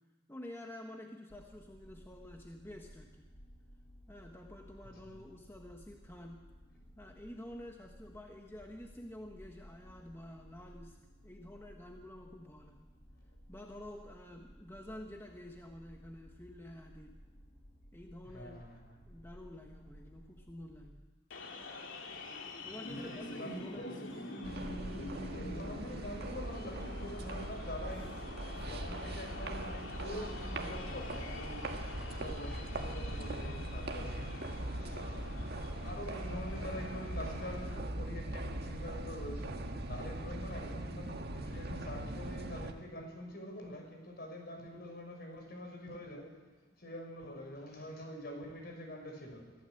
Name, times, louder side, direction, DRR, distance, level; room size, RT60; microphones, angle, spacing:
voice 1, 0.3-3.3 4.1-6.5 6.9-11.0 11.2-12.9 13.5-17.2 17.9-18.6 19.0-21.0 22.6-23.9, left 1 dB, 10° left, 2 dB, 1.4 m, -49 dB
sound 1, 1.3-20.9, equal, 30° left, 3.4 m, -57 dB
voice 2, 18.2-18.9 22.9-24.0 25.4-28.2 28.5-31.6 32.0-34.4 34.9-46.4 46.8-49.5, equal, 50° left, 3 dB, 5.7 m, -45 dB
sound 2, 21.3-37.8, left 2 dB, 75° left, 2.5 m, -46 dB
sound 3, 24.4-42.7, right 1 dB, 55° right, 1.7 m, -40 dB
23.5 x 15.5 x 7.8 m, 1.3 s
head